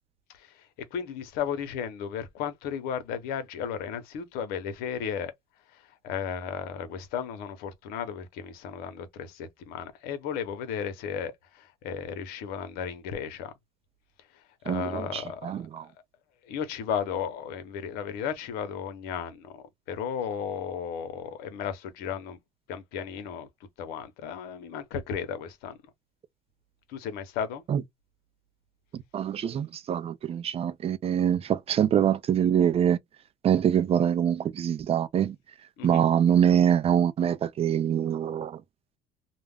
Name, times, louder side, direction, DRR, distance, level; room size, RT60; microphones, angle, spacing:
voice 1, 0.9-5.3 6.0-11.3 11.8-13.5 14.6-15.6 16.5-22.4 22.7-23.5 23.8-25.7 26.9-27.6 35.8-36.0, left 7 dB, 80° left, 0.8 m, -34 dB
voice 2, 14.7-15.9 27.7-27.8 28.9-33.0 33.4-35.4 35.8-38.6, right 9 dB, 40° right, 0.5 m, -24 dB
2.4 x 2.1 x 3.4 m
cardioid pair, 100°, 15 cm